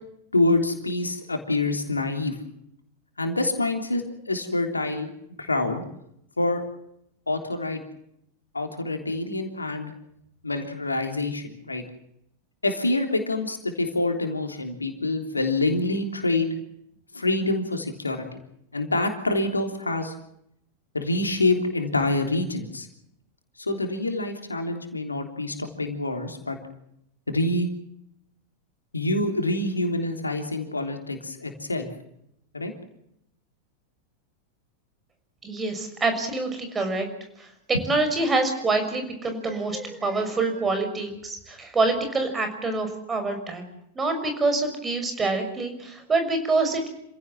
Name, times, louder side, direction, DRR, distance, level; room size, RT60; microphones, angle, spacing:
voice 1, 0.3-2.3 3.2-5.1 5.4-5.8 6.4-6.6 7.3-7.8 8.5-9.9 10.4-11.8 12.6-16.5 17.1-18.2 18.7-20.1 20.9-22.9 23.6-26.6 27.3-27.7 28.9-31.9 32.5-32.7, left 2 dB, 80° left, 5 dB, 3.3 m, -26 dB
voice 2, 35.4-37.1 37.4-37.5 37.9-43.6 43.9-46.9, right 3 dB, 15° right, 6 dB, 6.1 m, -26 dB
28.0 x 16.5 x 7.5 m, 0.78 s
figure-of-eight pair, 90°, 0 cm